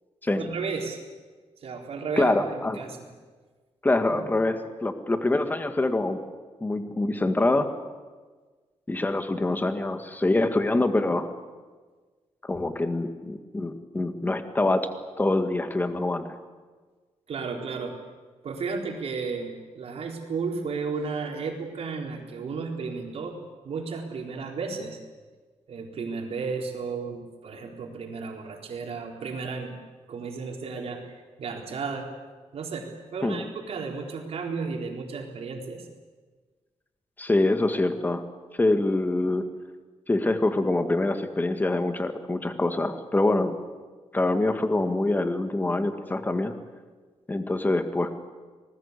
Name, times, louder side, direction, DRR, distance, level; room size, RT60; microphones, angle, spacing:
voice 1, 0.4-1.0 1.6-3.0 4.1-4.3 17.3-17.9 18.4-23.4 23.6-25.0 25.7-29.7 30.1-31.1 31.4-32.1 32.5-35.9, right 4 dB, 60° right, 1 dB, 4.2 m, -33 dB
voice 2, 2.2-2.8 3.8-6.2 6.6-7.7 8.9-11.3 12.4-14.9 15.2-16.3 33.2-33.4 37.2-38.2 38.6-39.4 40.1-43.6 44.1-46.5 47.3-48.1, left 2 dB, 15° left, 8 dB, 1.8 m, -25 dB
26.5 x 20.0 x 8.3 m, 1.4 s
wide cardioid pair, 160°, 12 cm